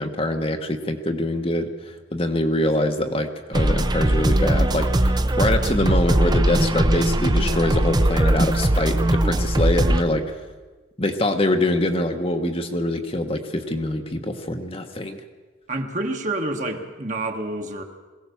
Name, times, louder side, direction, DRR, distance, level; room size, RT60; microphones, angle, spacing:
voice 1, 0.0-10.4 11.0-15.2, left 1 dB, 25° left, 5 dB, 1.2 m, -24 dB
sound 1, 3.5-10.0, right 1 dB, 20° right, 0.8 m, -20 dB
voice 2, 15.7-17.8, right 2 dB, 35° right, 4 dB, 1.6 m, -28 dB
22.0 x 17.0 x 7.1 m, 1.3 s
head